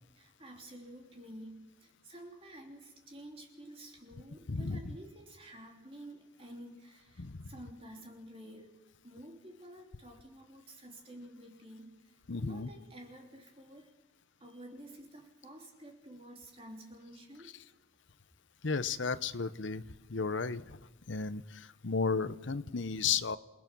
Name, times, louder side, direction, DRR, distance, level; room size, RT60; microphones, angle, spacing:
voice 1, 0.1-14.0 14.4-17.6, right 1 dB, 30° right, 1 dB, 3.1 m, -51 dB
voice 2, 4.5-5.0 7.2-7.5 12.3-12.7 18.6-19.8 20.1-20.8 21.1-23.4, left 5 dB, 65° left, 13 dB, 0.8 m, -34 dB
29.0 x 19.0 x 6.2 m, 1.1 s
head